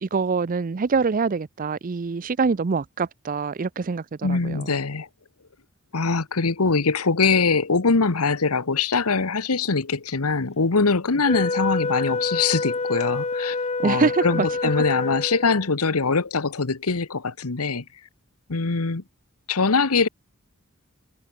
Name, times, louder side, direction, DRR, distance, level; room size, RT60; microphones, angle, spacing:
voice 1, 0.0-4.8 13.8-14.5, right 4 dB, 40° right, 0.5 m, -25 dB
voice 2, 4.2-5.1 5.9-13.6 13.8-17.8 18.5-19.0 19.5-20.1, left 4 dB, 80° left, 1.2 m, -22 dB
Wind instrument woodwind instrument, 11.3-15.6, left 3 dB, 30° left, 0.9 m, -27 dB
head